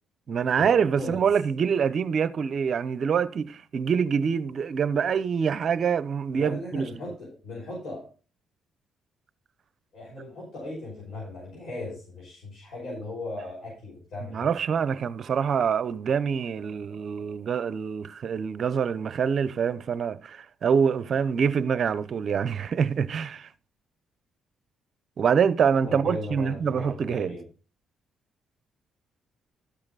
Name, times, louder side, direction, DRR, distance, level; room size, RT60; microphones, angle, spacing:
voice 1, 0.3-6.8 14.3-23.5 25.2-27.4, right 7 dB, 55° right, 0.7 m, -25 dB
voice 2, 6.3-8.0 9.9-14.5 25.8-27.4, left 2 dB, 70° left, 5.7 m, -37 dB
13.5 x 5.8 x 4.0 m
cardioid pair, 90°, 0 cm